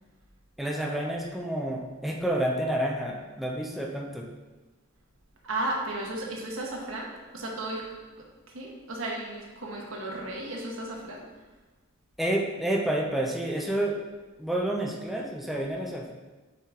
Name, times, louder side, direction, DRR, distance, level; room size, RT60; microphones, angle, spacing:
voice 1, 0.6-4.3 12.2-14.0 14.4-16.1, right 1 dB, ahead, -1 dB, 0.5 m, -29 dB
voice 2, 5.4-7.8 8.2-8.3 8.5-11.2, right 2 dB, 75° right, -2 dB, 1.3 m, -34 dB
5.5 x 5.0 x 3.8 m, 1.2 s
head